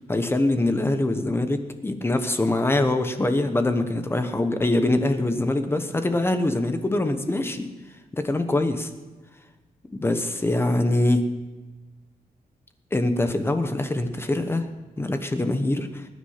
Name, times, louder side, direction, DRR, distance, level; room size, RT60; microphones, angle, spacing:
voice 1, 0.1-7.7 8.1-8.9 9.9-11.3 12.9-14.7 15.0-16.1, left 2 dB, 15° left, 8 dB, 1.0 m, -24 dB
21.0 x 9.6 x 5.7 m, 1.2 s
wide cardioid pair, 175°, 15 cm